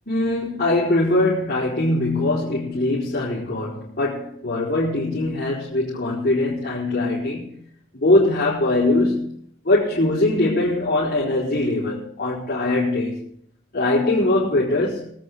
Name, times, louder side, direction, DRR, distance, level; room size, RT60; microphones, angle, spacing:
voice 1, 0.1-7.6 7.9-9.4 9.6-13.2 13.7-15.1, left 2 dB, 50° left, 4.5 m, -21 dB
23.5 x 9.1 x 3.7 m
head